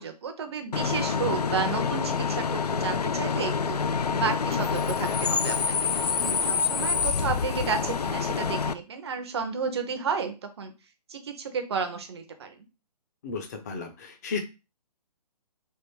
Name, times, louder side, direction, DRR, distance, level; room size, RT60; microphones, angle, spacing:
voice 1, 0.0-3.8 4.1-5.8 6.5-10.7 11.1-12.7, right 6 dB, 40° right, 7 dB, 0.7 m, -32 dB
Bus / Idling / Screech, 0.7-8.7, left 6 dB, 70° left, 0.4 m, -27 dB
voice 2, 1.1-1.4 6.2-6.7 13.2-14.4, left 4 dB, 25° left, 5 dB, 0.6 m, -35 dB
3.5 x 2.5 x 4.3 m, 0.30 s
figure-of-eight pair, 135°, 21 cm